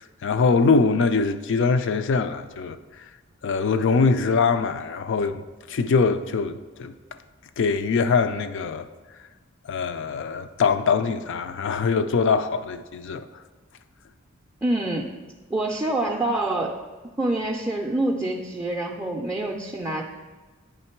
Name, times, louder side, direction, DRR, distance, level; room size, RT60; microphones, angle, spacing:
voice 1, 0.0-2.8 3.4-6.9 7.6-8.9 9.7-13.3, left 4 dB, 60° left, 0.4 m, -23 dB
voice 2, 14.6-15.1 15.5-16.8 17.2-20.0, right 1 dB, 10° right, 0.4 m, -26 dB
9.2 x 3.6 x 4.4 m
head